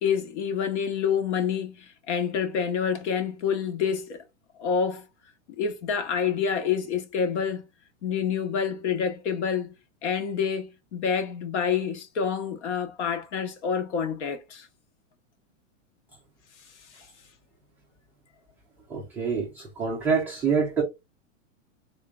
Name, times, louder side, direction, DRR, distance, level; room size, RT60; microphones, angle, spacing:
voice 1, 0.0-4.2 4.6-5.1 5.6-7.7 8.0-9.7 10.0-14.7 16.9-17.1, left 7 dB, 60° left, 1.2 m, -27 dB
voice 2, 18.9-20.8, right 5 dB, 5° right, 0.3 m, -26 dB
3.7 x 3.1 x 2.4 m
supercardioid pair, 150°, 39 cm